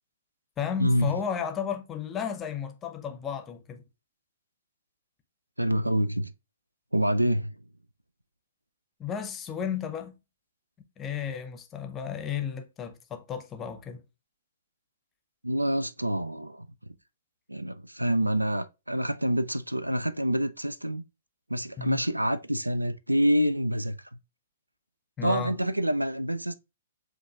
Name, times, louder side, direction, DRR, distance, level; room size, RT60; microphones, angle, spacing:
voice 1, 0.6-3.8 9.0-10.1 11.0-14.0 21.8-22.0 25.2-25.5, left 8 dB, 20° left, 0.7 m, -33 dB
voice 2, 5.6-6.3 6.9-7.6 15.4-16.7 17.5-21.0 21.5-24.0 25.2-26.5, equal, 85° right, 0.3 m, -27 dB
7.7 x 2.6 x 2.3 m
figure-of-eight pair, 115°, 0 cm